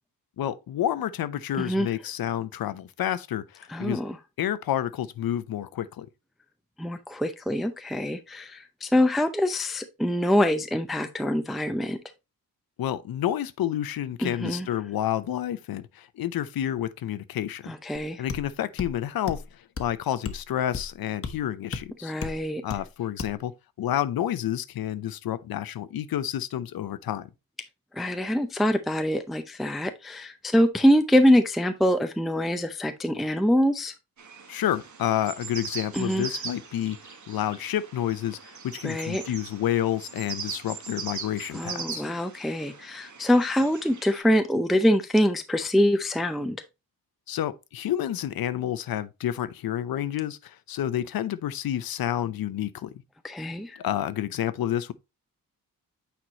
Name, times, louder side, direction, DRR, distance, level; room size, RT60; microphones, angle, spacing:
voice 1, 0.4-4.0 4.4-6.1 12.8-17.7 18.2-22.2 22.6-23.5 23.8-27.3 34.5-37.0 37.3-42.1 47.3-52.9 53.8-54.9, left 11 dB, 75° left, 0.7 m, -29 dB
voice 2, 1.5-1.9 3.7-4.2 6.8-12.0 14.2-14.7 17.7-18.3 22.0-22.6 27.9-33.9 35.9-36.3 38.8-39.2 41.5-46.6 53.2-53.8, equal, ahead, 0.5 m, -24 dB
sound 1, 18.3-18.5 18.8-18.9 19.3-19.5 19.8-19.9 20.2-20.4 20.7-20.9 21.2-21.3 21.7-21.8 22.2-22.4 22.7-22.9 23.2-23.4, left 5 dB, 40° left, 1.0 m, -33 dB
sound 2, 34.2-44.2, right 6 dB, 55° right, 1.5 m, -40 dB
8.7 x 4.6 x 2.9 m
wide cardioid pair, 125°, 36 cm